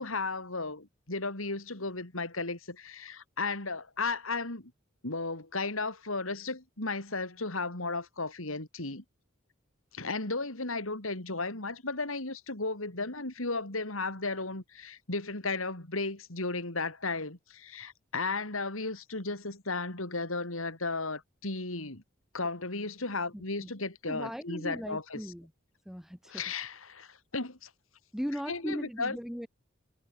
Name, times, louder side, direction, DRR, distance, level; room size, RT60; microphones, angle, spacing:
voice 1, 0.0-4.7 5.0-9.0 9.9-22.0 22.3-25.2 26.3-27.7 28.5-29.2, left 3 dB, 80° left, 4.1 m, -35 dB
voice 2, 23.3-23.7 24.1-25.5 25.8-26.4 28.1-29.5, equal, ahead, 4.8 m, -38 dB
head